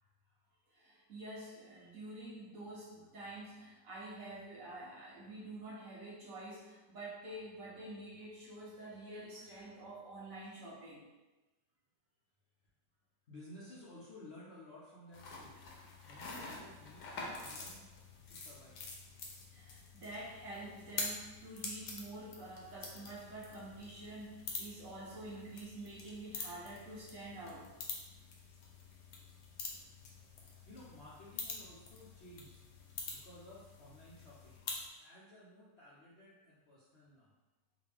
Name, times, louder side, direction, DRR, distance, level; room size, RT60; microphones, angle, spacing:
voice 1, 0.7-11.0 19.5-27.7, right 1 dB, 55° right, -6 dB, 1.3 m, -48 dB
voice 2, 13.3-15.7 16.0-17.8 18.3-18.8 30.7-32.5 33.1-34.6 35.0-37.3, left 1 dB, 55° left, -8 dB, 0.8 m, -55 dB
sound 1, 15.1-34.9, left 3 dB, 70° left, 1.3 m, -47 dB
5.0 x 2.6 x 3.4 m, 1.1 s
omnidirectional pair, 2.0 m